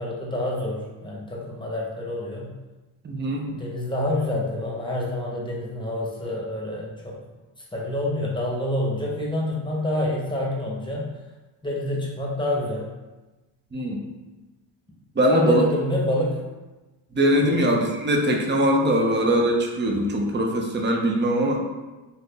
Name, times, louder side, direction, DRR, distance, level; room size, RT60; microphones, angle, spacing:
voice 1, 0.0-2.5 3.4-7.2 7.7-11.1 11.6-12.9 15.3-16.4 17.4-17.7, left 1 dB, 10° left, -4 dB, 0.9 m, -27 dB
voice 2, 3.0-3.5 13.7-14.0 15.2-15.6 17.1-21.6, equal, 20° right, 0 dB, 0.6 m, -21 dB
2.7 x 2.5 x 3.7 m, 1.1 s
cardioid pair, 75°, 50 cm